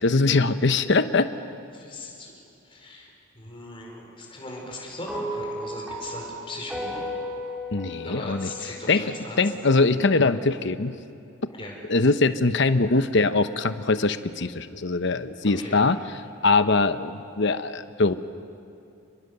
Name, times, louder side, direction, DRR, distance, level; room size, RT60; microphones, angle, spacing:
voice 1, 0.0-1.3 7.7-8.5 8.9-9.1 9.4-11.0 11.9-16.0 16.4-18.1, left 3 dB, 60° left, 11 dB, 0.9 m, -22 dB
voice 2, 1.7-2.4 2.6-7.1 8.0-9.4 11.5-11.7 15.4-15.8, left 2 dB, 25° left, 0 dB, 4.7 m, -39 dB
sound 1, 5.1-9.5, equal, ahead, 3.4 m, -35 dB
29.5 x 21.5 x 6.8 m, 2.7 s
head